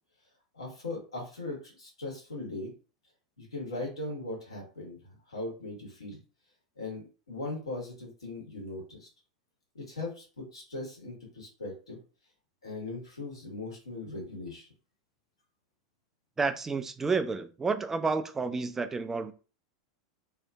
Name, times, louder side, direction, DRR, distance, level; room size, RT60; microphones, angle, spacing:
voice 1, 0.5-2.7 3.4-6.2 6.8-9.1 9.7-12.0 12.6-14.7, left 2 dB, 80° left, -2 dB, 1.2 m, -39 dB
voice 2, 16.4-19.3, right 4 dB, 15° right, 9 dB, 0.3 m, -30 dB
2.7 x 2.5 x 2.3 m, 0.35 s
figure-of-eight pair, 85°, 3 cm